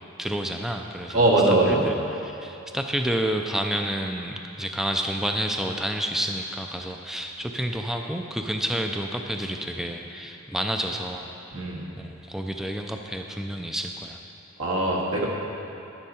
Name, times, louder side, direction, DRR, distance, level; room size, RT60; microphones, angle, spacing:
voice 1, 0.2-1.3 1.7-11.7 12.0-14.2, right 1 dB, ahead, 3 dB, 0.4 m, -30 dB
voice 2, 1.1-1.9 11.5-11.8 14.6-15.3, right 2 dB, 75° right, -3 dB, 1.9 m, -21 dB
11.0 x 9.8 x 4.3 m, 2.9 s
head